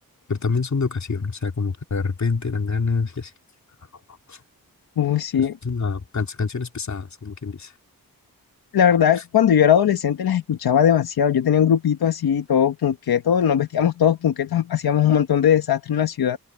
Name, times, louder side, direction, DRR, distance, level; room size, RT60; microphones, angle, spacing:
voice 1, 0.3-3.3 4.3-4.4 5.4-7.7 9.1-9.2, left 4 dB, 50° left, 2.8 m, -26 dB
voice 2, 5.0-5.5 8.7-16.4, left 9 dB, 90° left, 1.1 m, -19 dB
open air
wide cardioid pair, 90°, 36 cm